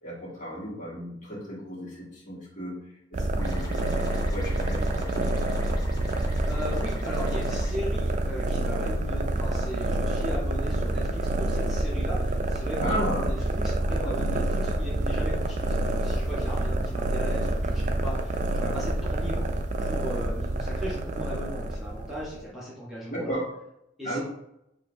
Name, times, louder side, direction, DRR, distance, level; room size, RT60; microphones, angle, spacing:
voice 1, 0.0-4.0 4.2-5.3 12.8-13.3 14.0-14.1 23.1-23.5 24.0-24.2, equal, 40° left, -6 dB, 1.6 m, -34 dB
sound 1, 3.1-22.4, right 1 dB, 40° right, 0.4 m, -27 dB
sound 2, 3.4-7.8, left 2 dB, 20° left, 0.8 m, -44 dB
voice 2, 6.5-19.5 19.8-23.4 24.0-24.2, equal, ahead, -8 dB, 1.0 m, -37 dB
6.7 x 2.6 x 2.6 m, 0.83 s
head